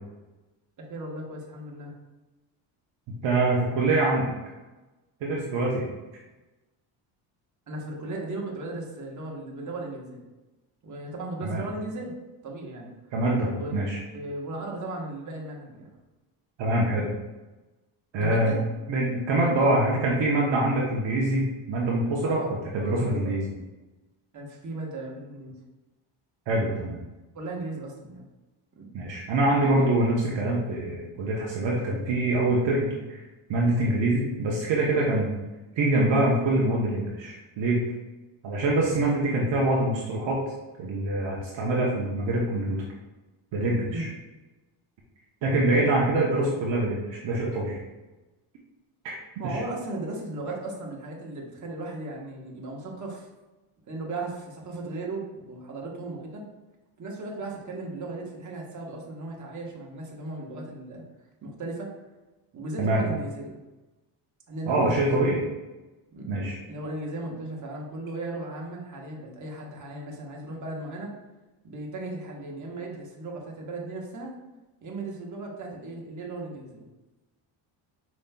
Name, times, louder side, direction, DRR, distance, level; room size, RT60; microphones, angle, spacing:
voice 1, 0.9-1.9 7.7-10.2 10.8-12.2 12.4-12.9 13.6-13.7 14.1-15.9 18.2-18.6 22.2-22.5 23.0-23.4 24.3-25.6 27.3-28.3 28.8-28.9 43.9-44.1 45.7-45.9 49.4-53.3 53.9-56.5 57.0-61.1 61.4-61.9 62.5-63.6 64.5-65.4 66.1-66.3 66.6-71.1 71.6-74.3 74.8-76.9, right 2 dB, 35° right, -1 dB, 1.1 m, -36 dB
voice 2, 3.2-4.3 5.2-5.9 11.4-11.7 13.1-14.0 16.6-17.1 18.1-18.6 18.9-23.5 26.5-27.0 28.9-33.2 33.5-35.3 35.8-37.8 38.4-40.4 40.8-42.8 43.5-44.1 45.4-47.8 49.0-49.2 49.4-49.6 62.8-63.0 64.7-65.4 66.3-66.6, right 2 dB, 60° right, -3 dB, 0.9 m, -25 dB
5.1 x 3.0 x 2.2 m, 1.1 s
supercardioid pair, 80°, 50 cm